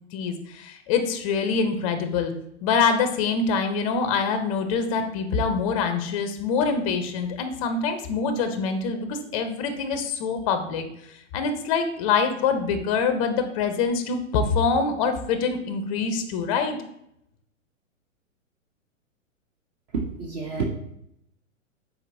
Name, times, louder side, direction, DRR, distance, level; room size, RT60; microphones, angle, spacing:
voice 1, 0.1-2.3 2.6-10.9 11.3-16.8, left 5 dB, 30° left, 8 dB, 0.4 m, -25 dB
voice 2, 19.9-20.6, right 5 dB, 35° right, 1 dB, 0.5 m, -29 dB
4.4 x 3.8 x 2.6 m, 0.76 s
hypercardioid pair, 115°, 40 cm